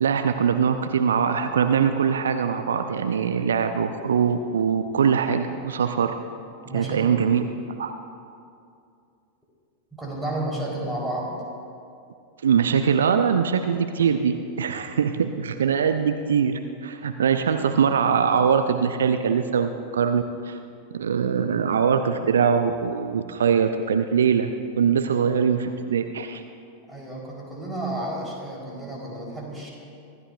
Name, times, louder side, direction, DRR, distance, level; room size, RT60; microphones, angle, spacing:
voice 1, 0.0-6.1 6.7-7.5 7.8-7.9 12.4-20.6 20.9-24.5 24.8-26.4, right 7 dB, 65° right, 8 dB, 0.6 m, -22 dB
voice 2, 6.6-7.1 9.9-11.3 26.9-29.7, right 1 dB, 5° right, -4 dB, 4.0 m, -31 dB
25.0 x 14.0 x 2.5 m, 2.5 s
figure-of-eight pair, 90°, 0 cm